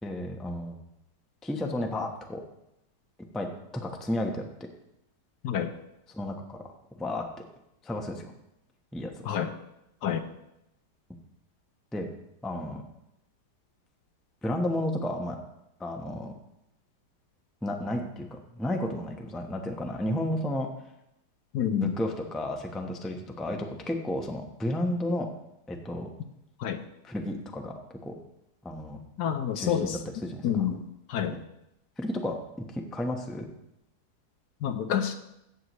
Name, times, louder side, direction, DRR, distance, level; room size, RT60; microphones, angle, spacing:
voice 1, 0.0-0.8 1.4-2.4 3.3-4.5 6.1-6.7 7.0-7.3 7.8-8.3 8.9-9.1 11.9-12.1 12.4-12.8 14.4-15.4 15.8-16.3 17.6-20.7 21.8-25.3 25.7-26.1 27.0-27.7 28.0-28.1 28.6-29.0 29.5-30.7 31.3-31.4 32.0-33.5, left 1 dB, ahead, 3 dB, 0.6 m, -32 dB
voice 2, 21.5-21.9 26.6-26.8 29.2-30.0 30.4-30.8 31.1-31.3 34.6-35.2, left 9 dB, 70° left, 8 dB, 1.2 m, -28 dB
15.0 x 8.1 x 3.1 m, 0.85 s
omnidirectional pair, 1.9 m